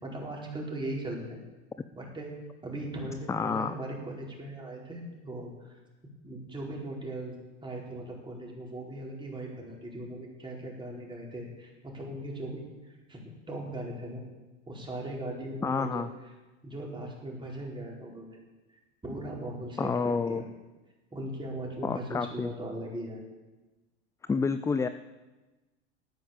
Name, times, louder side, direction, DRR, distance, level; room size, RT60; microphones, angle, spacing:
voice 1, 0.0-1.4 1.9-2.3 2.6-5.8 6.2-14.2 14.7-16.0 16.6-18.4 19.0-20.4 21.1-23.2, right 1 dB, 15° right, -2 dB, 4.6 m, -39 dB
voice 2, 3.3-3.7 15.6-16.1 19.8-20.4 21.8-22.5 24.3-24.9, left 5 dB, 10° left, 11 dB, 0.3 m, -29 dB
13.0 x 9.3 x 7.3 m, 1.1 s
hypercardioid pair, 100°, 35 cm